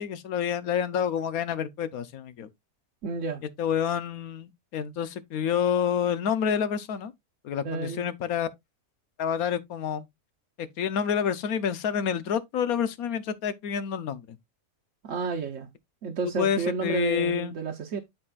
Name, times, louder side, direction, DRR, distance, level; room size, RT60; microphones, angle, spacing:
voice 1, 0.0-2.5 3.6-7.1 7.4-8.5 9.2-10.0 10.6-14.4 16.2-17.5, left 8 dB, 80° left, 1.3 m, -28 dB
voice 2, 3.0-3.4 7.6-8.0 15.0-15.7 16.0-18.0, right 4 dB, 65° right, 1.2 m, -31 dB
12.5 x 4.3 x 2.4 m
omnidirectional pair, 1.5 m